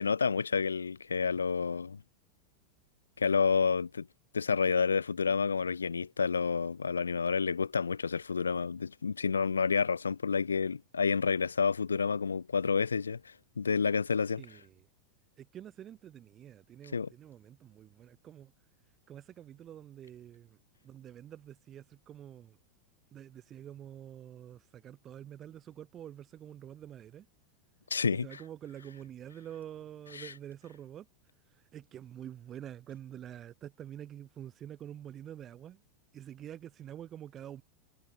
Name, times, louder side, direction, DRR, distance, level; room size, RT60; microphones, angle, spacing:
voice 1, 0.0-2.0 3.2-4.1 4.3-14.4 16.9-17.1 27.9-28.4 30.1-30.3, left 5 dB, 75° left, 1.4 m, -29 dB
voice 2, 14.4-14.9 15.4-18.5 19.1-22.6 23.1-27.3 28.1-31.1 31.5-35.8 36.1-37.6, right 10 dB, 30° right, 7.7 m, -47 dB
figure-of-eight pair, 90°, 0 cm